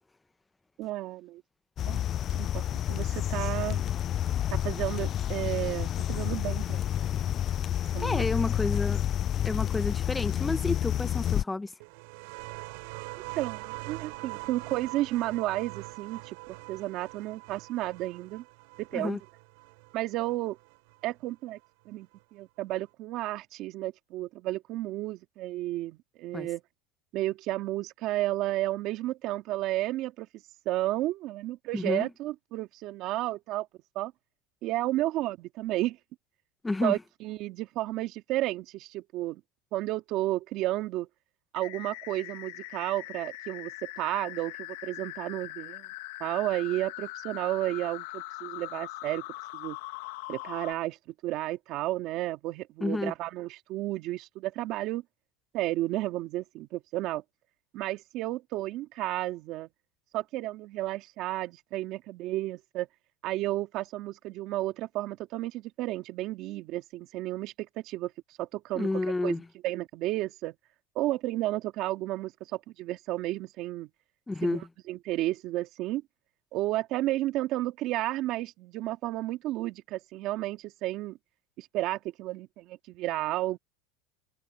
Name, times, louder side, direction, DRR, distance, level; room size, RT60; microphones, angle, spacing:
voice 1, 0.8-1.4 1.8-2.0 2.3-3.8 4.5-6.9 7.9-8.3 13.3-18.4 18.8-19.2 19.9-20.6 21.0-21.6 21.9-26.6 27.1-30.3 30.7-33.7 33.9-34.1 34.6-36.0 36.8-39.4 39.7-41.1 41.5-45.9 46.2-49.2 49.5-49.8 50.3-51.0 51.2-55.0 55.5-57.2 57.7-59.7 60.1-62.9 63.2-68.1 68.4-68.9 69.2-69.4 69.6-70.5 70.9-73.9 74.4-74.6 74.9-76.0 76.5-81.2 81.6-83.6, right 16 dB, 50° right, 2.3 m, -32 dB
sound 1, 1.8-11.4, left 11 dB, 35° left, 0.3 m, -29 dB
voice 2, 8.0-9.0 9.4-11.7 18.9-19.2 26.3-26.5 31.7-32.1 36.6-37.0 52.8-53.1 68.7-69.4 74.3-74.7, left 2 dB, 10° left, 0.9 m, -30 dB
sound 2, 11.8-21.1 22.2-22.3, right 28 dB, 70° right, 6.3 m, -43 dB
sound 3, 41.6-50.7, left 20 dB, 75° left, 1.6 m, -41 dB
supercardioid pair, 135°, 0 cm